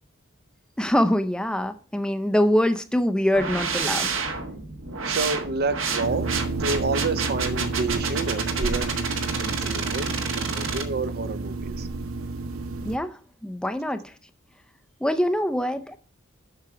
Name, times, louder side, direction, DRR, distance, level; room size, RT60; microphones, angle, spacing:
voice 1, 0.8-4.2 12.8-14.1 15.0-16.0, left 1 dB, 5° left, 0.5 m, -24 dB
sound 1, 3.3-10.8, right 5 dB, 65° right, 1.4 m, -29 dB
voice 2, 5.1-6.3 6.6-9.1 9.4-11.9, right 3 dB, 50° right, 0.6 m, -29 dB
sound 2, 6.0-13.0, right 3 dB, 85° right, 0.7 m, -31 dB
7.6 x 6.1 x 4.8 m
head